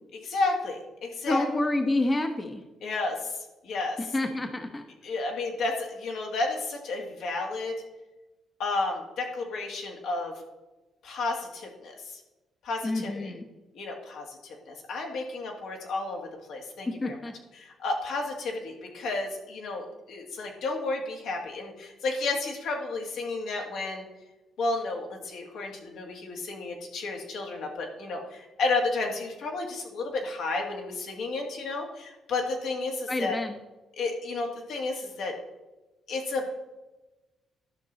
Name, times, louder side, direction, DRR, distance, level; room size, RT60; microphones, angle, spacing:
voice 1, 0.1-1.5 2.8-3.4 3.6-4.0 5.0-7.8 8.6-10.4 11.0-12.2 12.6-13.3 13.7-17.1 17.6-24.0 24.6-33.4 34.0-35.4 36.1-36.5, left 3 dB, 75° left, 1 dB, 2.0 m, -32 dB
voice 2, 1.3-2.6 4.0-4.9 12.8-13.5 16.9-17.3 33.1-33.6, left 2 dB, 20° left, 5 dB, 0.9 m, -28 dB
11.5 x 6.1 x 4.0 m, 1.1 s
cardioid pair, 90°, 0 cm